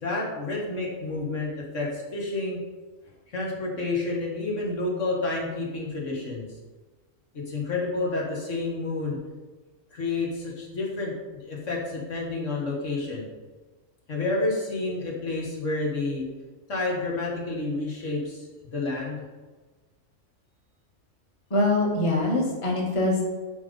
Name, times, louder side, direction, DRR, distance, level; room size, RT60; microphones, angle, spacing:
voice 1, 0.0-2.6 3.3-6.5 7.3-9.2 9.9-13.3 14.1-16.3 16.7-18.5 18.7-19.2, left 3 dB, 65° left, -3 dB, 2.0 m, -29 dB
voice 2, 21.5-23.2, left 2 dB, 25° left, -3 dB, 1.6 m, -23 dB
10.5 x 3.8 x 5.3 m, 1.3 s
omnidirectional pair, 1.4 m